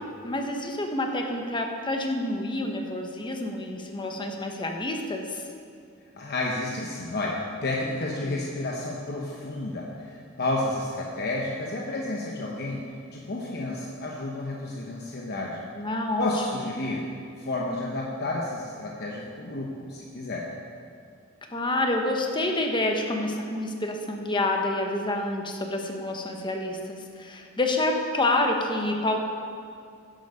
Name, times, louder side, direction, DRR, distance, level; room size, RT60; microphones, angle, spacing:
voice 1, 0.2-5.4 8.2-8.4 15.7-16.6 21.5-29.2, left 2 dB, 25° left, 3 dB, 1.0 m, -28 dB
voice 2, 6.1-12.8 13.1-15.6 16.2-17.1 17.4-20.5, left 2 dB, 50° left, -2 dB, 1.0 m, -31 dB
10.0 x 8.0 x 5.5 m, 2.3 s
head